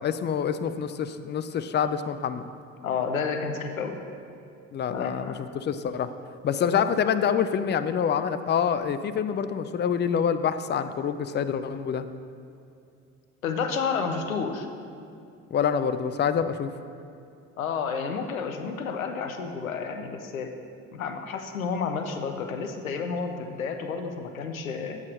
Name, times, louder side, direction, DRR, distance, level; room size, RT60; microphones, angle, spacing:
voice 1, 0.0-2.5 4.7-6.1 6.4-12.1 15.5-16.7, left 7 dB, 30° left, 11 dB, 0.4 m, -26 dB
voice 2, 2.8-4.0 4.9-5.4 6.9-7.0 13.4-14.7 17.6-20.6 20.9-25.0, left 5 dB, 90° left, 6 dB, 0.6 m, -30 dB
7.4 x 4.7 x 6.3 m, 2.5 s
figure-of-eight pair, 50°, 40 cm